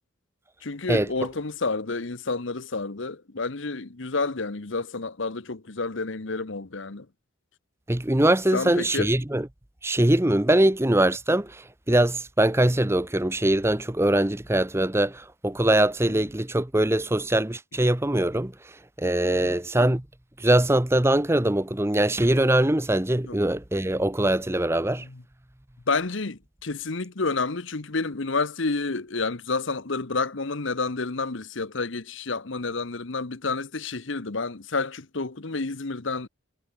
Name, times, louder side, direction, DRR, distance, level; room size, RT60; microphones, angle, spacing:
voice 1, 0.6-7.1 8.5-9.1 19.3-19.6 23.2-23.4 24.8-25.2 25.9-36.3, left 3 dB, 65° left, 1.1 m, -30 dB
voice 2, 7.9-9.5 9.8-18.5 19.0-20.0 20.4-25.1, right 1 dB, 10° right, 0.8 m, -22 dB
head